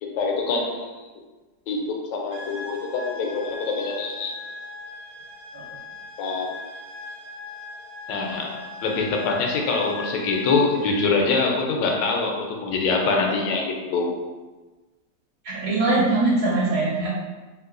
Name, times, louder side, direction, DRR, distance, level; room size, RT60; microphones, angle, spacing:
voice 1, 0.0-0.9 1.7-4.3 6.2-6.5 8.1-14.1, left 4 dB, 90° left, 1 dB, 1.3 m, -24 dB
sound 1, 2.3-11.2, left 3 dB, 40° right, 0.6 m, -40 dB
voice 2, 15.4-17.2, right 2 dB, 70° right, -7 dB, 1.2 m, -22 dB
3.1 x 2.8 x 2.4 m, 1.3 s
omnidirectional pair, 1.9 m